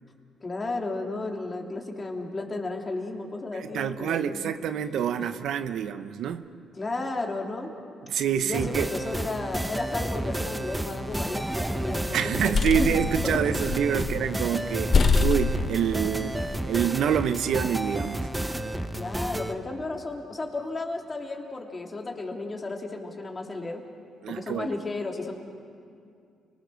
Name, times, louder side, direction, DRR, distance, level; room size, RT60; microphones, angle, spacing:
voice 1, 0.4-4.6 5.2-5.3 6.7-7.7 8.4-12.5 12.8-13.0 13.2-13.4 14.0-14.1 18.9-23.8 24.3-25.4, left 2 dB, 30° left, 1 dB, 2.9 m, -33 dB
voice 2, 3.5-6.5 8.0-8.9 12.1-18.3 24.2-24.7, right 8 dB, 75° right, 10 dB, 0.8 m, -27 dB
sound 1, 8.5-19.5, right 1 dB, 10° right, 1.1 m, -31 dB
sound 2, 11.1-11.7 12.2-14.3 14.6-14.7 14.9-16.4, left 4 dB, 45° left, 0.9 m, -26 dB
29.5 x 20.0 x 6.4 m, 2.3 s
cardioid pair, 90°, 0 cm